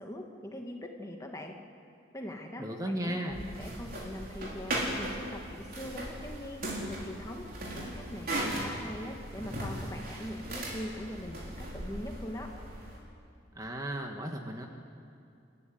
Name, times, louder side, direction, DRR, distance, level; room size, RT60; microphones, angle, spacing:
voice 1, 0.0-1.5 2.1-6.6 6.9-7.4 7.7-12.5, left 1 dB, 15° left, 2 dB, 1.7 m, -42 dB
voice 2, 2.6-3.5 13.5-14.7, right 1 dB, 20° right, 3 dB, 1.5 m, -35 dB
sound 1, 3.3-13.0, right 1 dB, 50° right, 4.0 m, -38 dB
29.0 x 14.5 x 9.3 m, 2.5 s
head